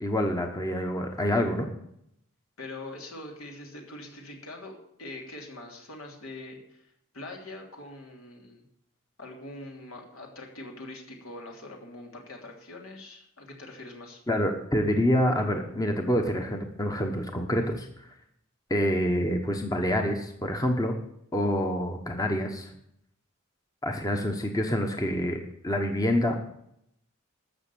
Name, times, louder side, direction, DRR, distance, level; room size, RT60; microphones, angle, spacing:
voice 1, 0.0-1.7 14.3-17.9 18.7-20.9 21.3-22.7 23.8-26.4, equal, 15° left, 4 dB, 1.1 m, -27 dB
voice 2, 2.6-8.6 9.2-14.2, left 2 dB, 75° left, 1 dB, 3.2 m, -43 dB
13.5 x 6.5 x 8.5 m, 0.75 s
head